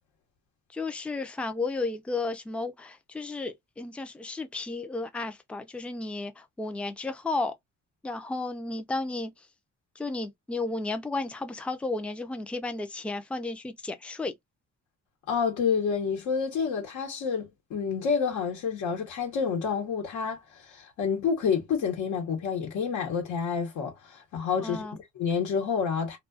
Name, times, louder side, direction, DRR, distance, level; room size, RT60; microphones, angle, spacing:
voice 1, 0.7-7.5 8.0-9.5 10.0-14.3 24.6-25.0, left 3 dB, 5° left, 0.4 m, -33 dB
voice 2, 15.3-24.8 25.2-26.2, left 6 dB, 75° left, 1.0 m, -29 dB
2.3 x 2.3 x 2.4 m
cardioid pair, 90°, 30 cm